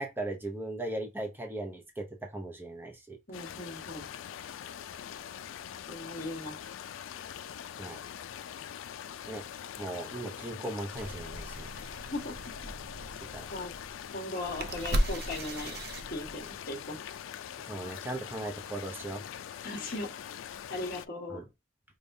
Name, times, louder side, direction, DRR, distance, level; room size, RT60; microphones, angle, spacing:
voice 1, 0.0-2.1 2.3-3.2 7.8-8.0 9.3-9.4 9.8-11.7 13.2-13.5 17.6-19.2 21.3-21.4, right 1 dB, 10° right, 0.6 m, -38 dB
sound 1, 3.3-21.1, left 9 dB, 80° left, 0.3 m, -43 dB
voice 2, 3.3-4.1 5.9-6.6 12.1-12.3 13.5-13.7 14.1-15.8 16.1-17.0 19.6-20.2 20.7-21.4, left 2 dB, 45° left, 1.2 m, -38 dB
sound 2, 10.9-16.6, right 1 dB, 55° right, 0.5 m, -36 dB
5.1 x 2.3 x 2.6 m
head